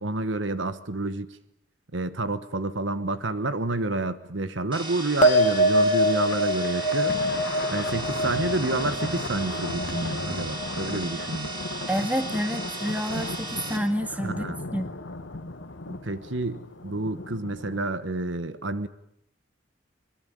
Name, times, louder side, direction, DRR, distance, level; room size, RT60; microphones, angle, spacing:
voice 1, 0.0-1.4 1.9-7.2 7.7-11.5 14.2-14.6 15.9-18.9, right 2 dB, 75° right, 12 dB, 1.3 m, -29 dB
Saw Fx, 4.7-13.8, right 2 dB, 25° right, 3.8 m, -37 dB
sound 1, 5.2-11.9 12.2-12.8, equal, 40° left, 2.1 m, -26 dB
Thunder, 6.1-17.9, left 2 dB, 75° left, 1.4 m, -36 dB
voice 2, 11.9-14.5 14.7-14.9, equal, 10° right, 8 dB, 1.9 m, -28 dB
23.5 x 22.0 x 9.0 m, 0.76 s
head